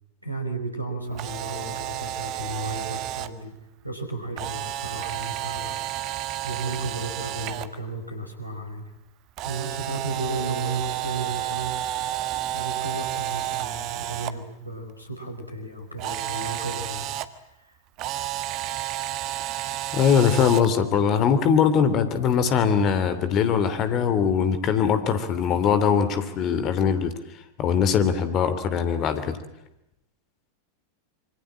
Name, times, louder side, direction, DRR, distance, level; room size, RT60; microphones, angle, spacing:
voice 1, 0.2-3.5 3.8-8.9 9.4-12.0 12.5-17.1 17.4-17.8, right 2 dB, 90° right, 6 dB, 4.9 m, -34 dB
Camera, 1.1-3.3 4.4-7.7 9.4-14.3 16.0-17.3 18.0-20.7, right 13 dB, 40° right, 1.5 m, -31 dB
voice 2, 19.9-27.1 27.6-29.4, left 7 dB, 35° left, 11 dB, 3.1 m, -21 dB
26.0 x 24.0 x 8.8 m, 0.87 s
figure-of-eight pair, 90°, 0 cm